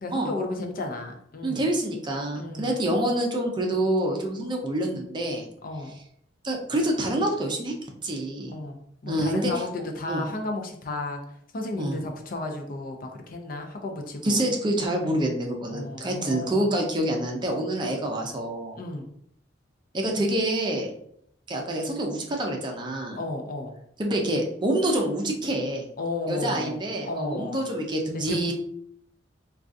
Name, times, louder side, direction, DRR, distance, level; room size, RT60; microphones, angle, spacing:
voice 1, 0.0-1.7 2.3-2.8 5.6-6.0 8.5-11.2 11.5-14.5 15.7-16.7 18.8-19.1 23.1-23.8 26.0-27.7 28.3-28.5, left 2 dB, 50° left, 3 dB, 0.5 m, -33 dB
voice 2, 1.4-5.5 6.4-7.7 8.0-8.5 9.0-9.5 10.1-10.2 11.7-12.0 14.2-18.8 19.9-20.9 21.5-23.2 24.0-25.9 26.3-28.5, right 1 dB, 25° right, 1 dB, 0.5 m, -27 dB
3.6 x 2.3 x 2.5 m, 0.70 s
head